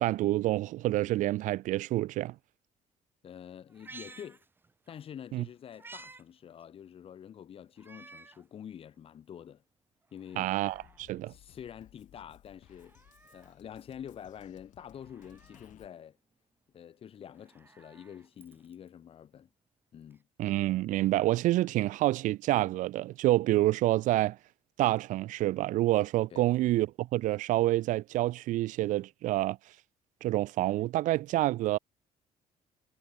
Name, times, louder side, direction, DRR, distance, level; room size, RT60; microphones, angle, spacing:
voice 1, 0.0-2.3 5.3-5.4 10.4-11.3 20.4-24.4 24.8-29.6 30.2-31.8, right 16 dB, 65° right, 0.4 m, -28 dB
voice 2, 3.2-4.4 4.9-9.6 10.1-10.5 11.3-16.2 16.7-19.5 19.9-20.2 26.3-26.5, left 9 dB, 40° left, 2.2 m, -47 dB
Meow, 3.7-5.0 5.4-6.2 6.6-6.7 7.8-8.4 9.0-9.1 10.0-11.0 12.6-13.6 14.9-15.7 17.2-18.9 20.1-20.2, right 3 dB, 15° right, 1.1 m, -54 dB
Drum kit, 10.7-15.9, left 13 dB, 65° left, 3.2 m, -60 dB
cardioid pair, 155°, 14 cm